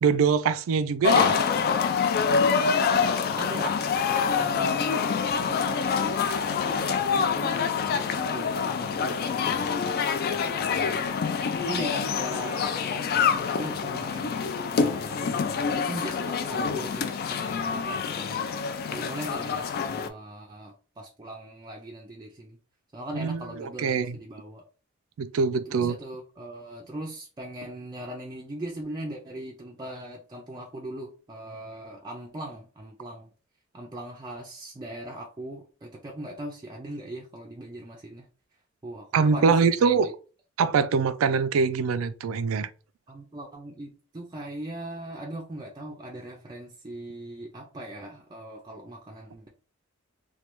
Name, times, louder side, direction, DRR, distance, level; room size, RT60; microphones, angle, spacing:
voice 1, 0.0-1.4 23.1-24.2 25.2-26.0 39.1-40.1 40.6-42.7, right 5 dB, 85° right, 0.4 m, -23 dB
sound 1, 1.0-20.1, left 6 dB, 50° left, 0.3 m, -26 dB
voice 2, 3.4-3.7 4.0-11.1 11.6-18.5 18.9-22.6 22.9-24.7 25.7-33.3 33.7-38.3 38.8-40.1 43.1-49.5, right 1 dB, 20° right, 0.4 m, -40 dB
3.1 x 2.2 x 2.9 m
head